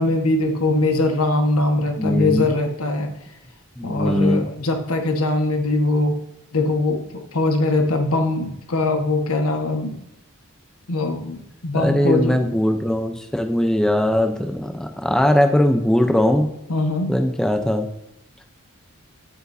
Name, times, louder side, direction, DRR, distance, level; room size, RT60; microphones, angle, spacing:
voice 1, 0.0-3.1 3.8-6.1 6.5-7.0 7.3-10.0 10.9-12.4 16.7-17.1, left 2 dB, 90° left, 4 dB, 1.4 m, -21 dB
voice 2, 2.0-2.5 3.8-4.4 11.7-16.5 17.1-17.9, left 1 dB, 5° left, 5 dB, 0.6 m, -20 dB
9.6 x 8.1 x 2.7 m, 0.84 s
head